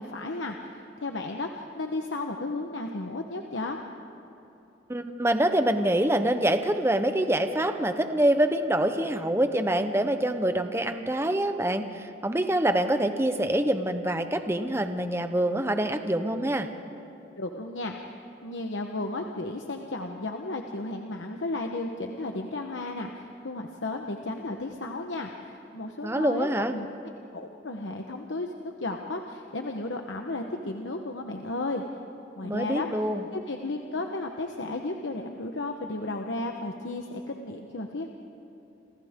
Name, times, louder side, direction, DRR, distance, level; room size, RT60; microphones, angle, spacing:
voice 1, 0.0-3.8 17.4-26.9 27.3-31.8 32.4-32.9 33.3-38.1, left 2 dB, 90° left, 3 dB, 1.1 m, -34 dB
voice 2, 4.9-16.7 26.0-26.7 32.4-33.3, right 1 dB, 15° right, 8 dB, 0.9 m, -25 dB
28.0 x 27.5 x 3.7 m, 2.9 s
head